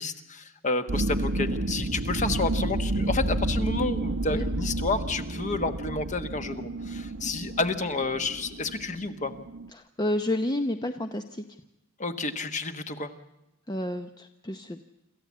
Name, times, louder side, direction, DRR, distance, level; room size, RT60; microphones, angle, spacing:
voice 1, 0.0-9.3 12.0-13.1, left 3 dB, 35° left, 8 dB, 1.4 m, -30 dB
sound 1, 0.9-9.7, right 1 dB, 70° right, 1.0 m, -30 dB
voice 2, 9.7-11.4 13.7-14.8, left 1 dB, 20° left, 7 dB, 0.7 m, -30 dB
27.0 x 14.5 x 8.6 m, 0.93 s
head